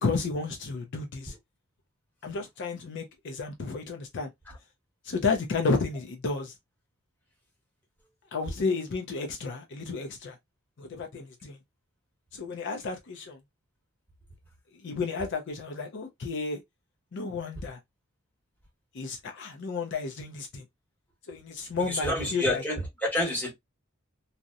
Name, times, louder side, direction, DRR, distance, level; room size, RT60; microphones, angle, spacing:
voice 1, 0.0-1.3 2.2-4.3 5.0-6.5 8.3-10.4 10.8-11.6 12.3-13.4 14.8-16.6 17.1-17.8 18.9-20.6 21.3-22.6, left 4 dB, 55° left, 0.5 m, -32 dB
voice 2, 21.9-23.5, left 1 dB, 10° left, 1.0 m, -28 dB
2.7 x 2.0 x 2.4 m
head